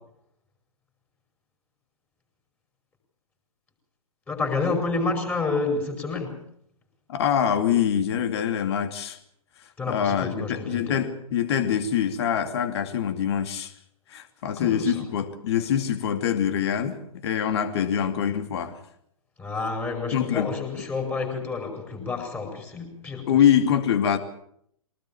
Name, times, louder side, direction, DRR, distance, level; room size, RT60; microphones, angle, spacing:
voice 1, 4.3-6.4 9.8-11.0 14.6-15.0 19.4-23.3, left 3 dB, 10° left, 5.4 m, -29 dB
voice 2, 7.1-9.2 9.9-13.7 14.1-18.8 20.1-20.5 23.3-24.2, left 9 dB, 45° left, 2.6 m, -24 dB
23.5 x 19.0 x 7.2 m
figure-of-eight pair, 125°, 18 cm